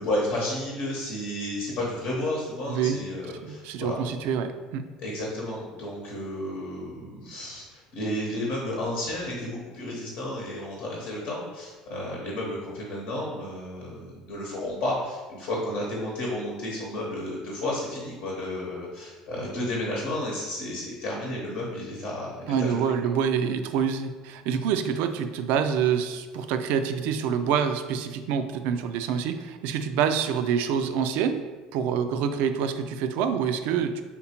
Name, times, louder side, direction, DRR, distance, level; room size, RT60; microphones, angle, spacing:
voice 1, 0.0-4.0 5.0-22.8, left 1 dB, 65° left, -3 dB, 1.0 m, -32 dB
voice 2, 3.4-4.8 22.5-31.4 31.7-34.0, right 7 dB, 65° right, 9 dB, 0.3 m, -26 dB
4.3 x 3.5 x 2.9 m, 1.3 s
hypercardioid pair, 65°, 3 cm